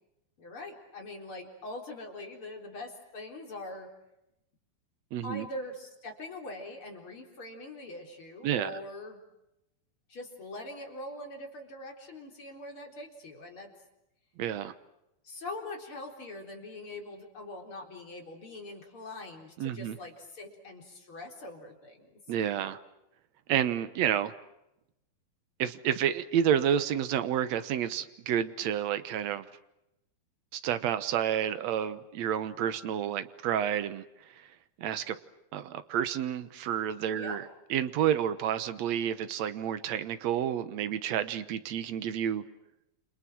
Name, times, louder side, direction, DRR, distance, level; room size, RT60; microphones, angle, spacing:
voice 1, 0.4-3.9 5.2-9.2 10.1-13.7 15.2-22.2 37.1-37.4, left 2 dB, 35° left, 2 dB, 4.5 m, -43 dB
voice 2, 5.1-5.4 8.4-8.7 14.4-14.7 19.6-20.0 22.3-22.8 23.5-24.3 25.6-29.4 30.5-34.0 34.4-34.5 34.8-35.2 35.5-42.4, right 9 dB, 70° right, 12 dB, 1.6 m, -30 dB
29.5 x 27.5 x 6.2 m, 0.88 s
omnidirectional pair, 4.6 m